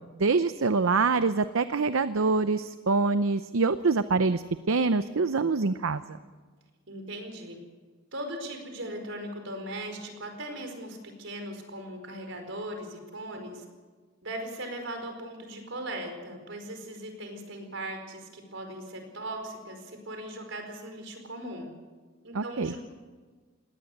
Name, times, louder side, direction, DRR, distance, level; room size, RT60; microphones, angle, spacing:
voice 1, 0.2-6.2 22.3-22.7, right 4 dB, 85° right, 12 dB, 0.7 m, -25 dB
voice 2, 6.9-7.6 8.1-13.6 14.2-21.7 22.2-22.8, right 1 dB, 65° right, 5 dB, 4.8 m, -39 dB
20.0 x 18.0 x 7.9 m, 1.4 s
head